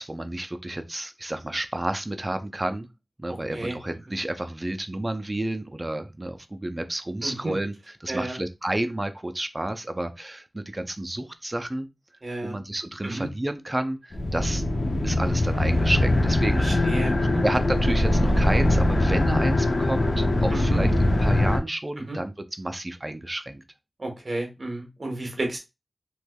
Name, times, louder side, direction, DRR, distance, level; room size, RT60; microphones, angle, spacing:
voice 1, 0.0-2.9 3.2-7.7 8.0-11.9 12.4-14.6 15.0-20.9 21.2-23.6, right 1 dB, 25° right, 0.4 m, -30 dB
voice 2, 7.2-7.5 8.1-8.4 12.2-12.6 13.0-13.3 16.6-17.4 20.5-20.8 22.1-22.2 24.0-25.6, right 2 dB, 55° right, 1.1 m, -31 dB
sound 1, 14.1-21.6, left 1 dB, 60° left, 0.6 m, -22 dB
3.2 x 3.0 x 2.2 m
wide cardioid pair, 60°, 0 cm